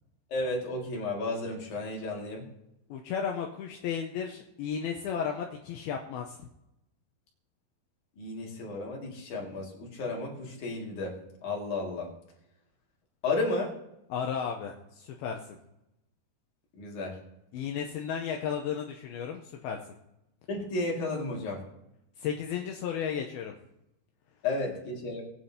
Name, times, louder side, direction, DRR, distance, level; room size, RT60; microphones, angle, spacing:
voice 1, 0.3-2.5 8.2-11.2 11.4-12.1 13.2-13.7 16.8-17.2 20.5-21.6 24.4-25.2, left 2 dB, 50° left, -1 dB, 3.4 m, -33 dB
voice 2, 2.9-6.5 14.1-15.4 17.5-19.8 22.2-23.5, left 7 dB, 75° left, 2 dB, 2.5 m, -34 dB
19.5 x 9.5 x 2.8 m, 0.87 s
omnidirectional pair, 4.8 m